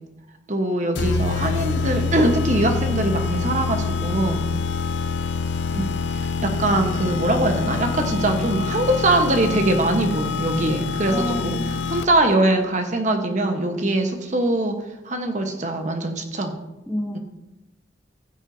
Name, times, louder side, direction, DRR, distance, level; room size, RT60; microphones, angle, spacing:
voice 1, 0.5-4.4 5.7-14.8 15.0-16.5 17.1-17.2, right 2 dB, 40° right, 5 dB, 1.1 m, -22 dB
sound 1, 1.0-12.3, left 4 dB, 80° left, 0.5 m, -26 dB
voice 2, 11.1-11.7 16.9-17.2, equal, 5° left, 1 dB, 0.7 m, -28 dB
15.5 x 7.2 x 2.7 m, 0.97 s
head